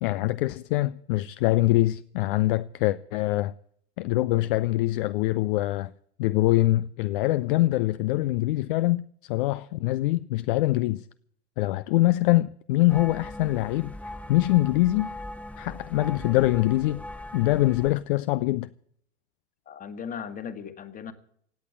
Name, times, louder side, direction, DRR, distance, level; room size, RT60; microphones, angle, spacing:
voice 1, 0.0-3.5 4.0-5.9 6.2-11.0 11.6-13.9 14.3-15.1 15.6-17.0 17.3-18.7, left 17 dB, 50° left, 0.5 m, -24 dB
sound 1, 12.9-17.9, left 1 dB, 5° left, 1.0 m, -40 dB
voice 2, 19.7-21.1, left 7 dB, 25° left, 1.6 m, -37 dB
17.5 x 8.4 x 8.5 m
figure-of-eight pair, 85°, 34 cm